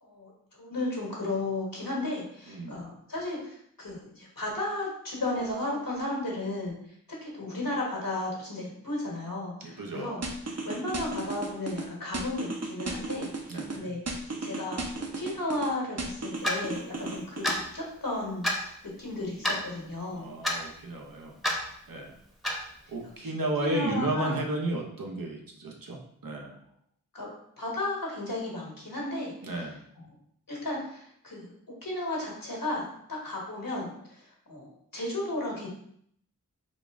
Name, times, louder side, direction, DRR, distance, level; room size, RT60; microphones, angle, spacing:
voice 1, 0.0-6.7 7.2-10.2 10.4-14.8 15.2-20.3 23.0-23.3 23.6-24.3 27.1-27.3 27.6-29.7 29.9-30.0 30.5-31.5 31.8-33.9 34.5-35.7, left 2 dB, 80° left, -3 dB, 1.3 m, -34 dB
voice 2, 2.5-2.8 9.6-10.2 13.5-13.9 20.2-21.4 21.9-22.1 22.9-26.5 29.4-29.8, right 1 dB, 85° right, 0 dB, 0.8 m, -33 dB
sound 1, 10.2-11.8 12.1-13.8 14.1-15.7 16.0-17.6, right 3 dB, 50° right, 0.6 m, -34 dB
Clock, 16.4-16.6 17.4-17.6 18.4-18.6 19.4-19.6 20.4-20.6 21.4-21.6 22.4-22.6, left 1 dB, ahead, 0.7 m, -27 dB
4.0 x 2.5 x 3.5 m, 0.68 s
wide cardioid pair, 45°, 33 cm